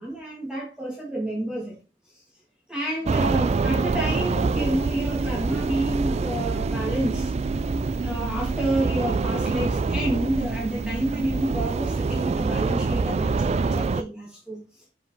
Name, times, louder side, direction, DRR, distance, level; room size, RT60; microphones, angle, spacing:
voice 1, 0.0-1.8 2.7-7.3 8.0-14.6, right 1 dB, 5° right, 2.5 m, -29 dB
sound 1, 3.0-14.0, right 4 dB, 35° right, 0.3 m, -25 dB
7.4 x 4.9 x 3.3 m
head